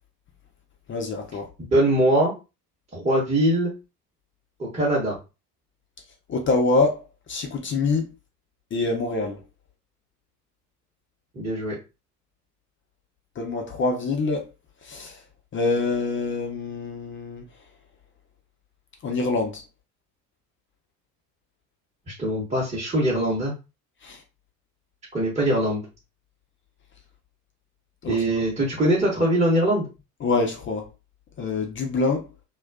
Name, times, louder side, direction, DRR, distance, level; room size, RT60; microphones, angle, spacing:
voice 1, 0.9-1.5 6.3-8.1 8.7-9.4 13.4-14.5 14.8-15.2 15.5-17.5 19.0-19.6 24.0-24.2 28.0-28.4 30.2-30.9 31.4-32.2, left 3 dB, 25° left, 0.5 m, -25 dB
voice 2, 1.7-2.3 2.9-3.7 4.6-5.2 11.3-11.8 22.1-23.5 25.1-25.8 28.1-29.9, right 1 dB, 15° right, 0.9 m, -22 dB
2.4 x 2.3 x 2.3 m
hypercardioid pair, 70°, 48 cm